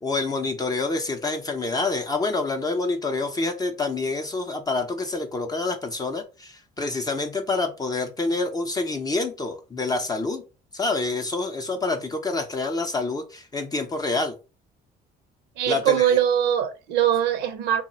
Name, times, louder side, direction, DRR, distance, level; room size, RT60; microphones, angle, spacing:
voice 1, 0.0-10.4 10.7-14.3 15.7-16.2, left 3 dB, 20° left, 0.5 m, -27 dB
voice 2, 15.6-17.8, right 10 dB, 85° right, 0.5 m, -22 dB
2.3 x 2.0 x 3.9 m
cardioid pair, 110°, 17 cm